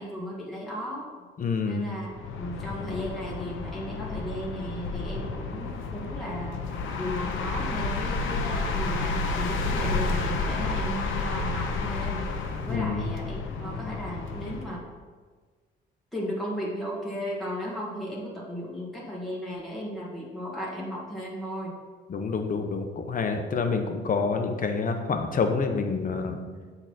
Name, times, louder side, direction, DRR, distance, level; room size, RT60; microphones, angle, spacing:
voice 1, 0.0-1.3 1.7-2.1 2.4-6.6 7.0-12.3 12.7-14.9 16.1-21.8, equal, ahead, -5 dB, 1.6 m, -35 dB
voice 2, 1.4-1.9 12.7-13.1 22.1-26.4, left 4 dB, 45° left, 5 dB, 0.9 m, -27 dB
sound 1, 2.1-14.7, left 3 dB, 85° left, 0.8 m, -31 dB
6.8 x 3.9 x 6.0 m, 1.5 s
cardioid pair, 90°, 20 cm